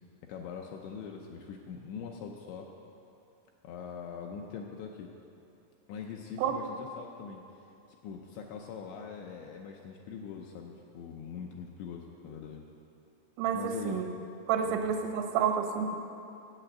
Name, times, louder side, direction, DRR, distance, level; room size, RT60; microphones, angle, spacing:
voice 1, 0.3-2.7 3.6-5.1 5.9-7.4 8.0-12.6 13.5-14.0 14.6-14.8 15.1-15.2, left 6 dB, 80° left, 1 dB, 2.7 m, -42 dB
voice 2, 13.4-14.1 14.5-16.0, right 7 dB, 80° right, 4 dB, 3.5 m, -29 dB
10.5 x 8.2 x 7.9 m, 2.7 s
omnidirectional pair, 5.8 m